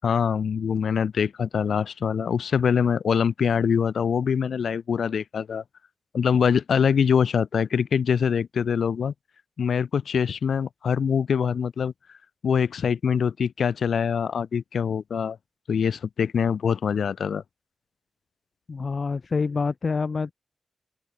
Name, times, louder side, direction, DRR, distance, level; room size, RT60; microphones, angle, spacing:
voice 1, 0.0-5.6 6.1-9.1 9.6-11.9 12.4-15.4 15.7-17.4, left 7 dB, 85° left, 7.5 m, -24 dB
voice 2, 18.7-20.3, left 4 dB, 45° left, 5.4 m, -26 dB
open air
wide cardioid pair, 125°, 0 cm